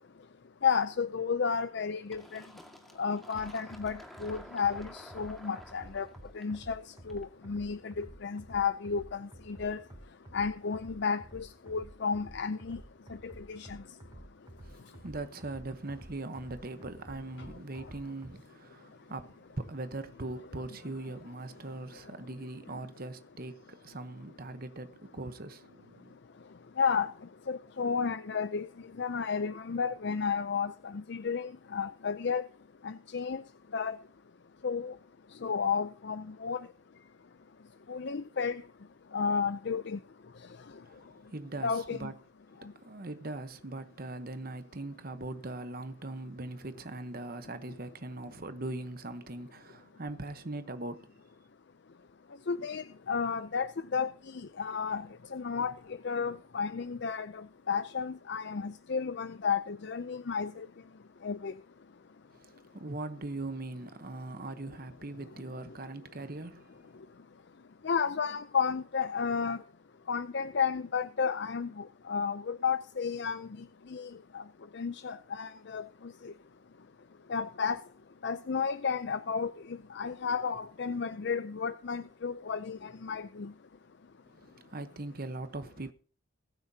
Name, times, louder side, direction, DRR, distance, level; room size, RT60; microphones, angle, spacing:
voice 1, 0.6-2.4 3.0-6.1 6.3-9.8 10.3-12.8 13.1-13.8 26.8-27.1 27.5-28.7 29.0-32.4 32.8-33.4 33.7-34.0 34.6-34.9 35.4-36.6 37.9-38.6 39.1-40.0 41.6-42.1 52.5-55.7 56.0-60.7 61.2-61.5 67.8-69.6 70.1-73.5 73.9-74.4 74.7-76.3 77.3-77.8 78.2-83.5, left 6 dB, 50° left, 0.5 m, -32 dB
Fill (with liquid), 2.1-7.5, equal, ahead, 1.9 m, -51 dB
sound 1, 3.3-18.3, right 1 dB, 20° right, 0.8 m, -51 dB
voice 2, 14.6-26.2 40.8-42.1 42.6-51.1 62.3-66.7 84.3-85.9, right 2 dB, 45° right, 1.0 m, -41 dB
22.0 x 9.4 x 2.8 m
head